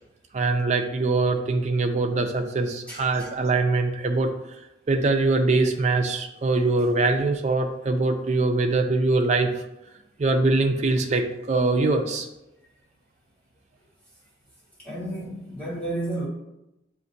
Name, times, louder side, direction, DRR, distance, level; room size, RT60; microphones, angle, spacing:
voice 1, 0.3-4.3 4.9-9.5 10.2-12.3, right 3 dB, 40° right, 0.4 m, -23 dB
voice 2, 14.8-16.3, right 1 dB, 10° left, 1.4 m, -31 dB
7.0 x 2.5 x 2.6 m
head